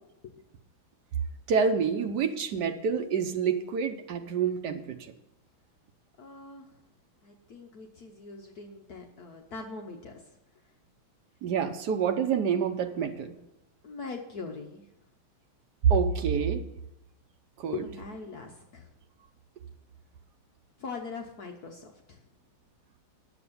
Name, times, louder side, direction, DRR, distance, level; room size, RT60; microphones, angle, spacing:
voice 1, 1.5-5.1 11.4-13.3 15.8-16.6 17.6-17.8, right 6 dB, 60° right, 6 dB, 1.3 m, -27 dB
voice 2, 6.2-6.8 7.2-10.6 13.8-14.9 17.7-18.9 20.8-22.2, left 4 dB, 55° left, 2 dB, 1.2 m, -42 dB
9.6 x 7.2 x 6.9 m, 0.86 s
omnidirectional pair, 2.3 m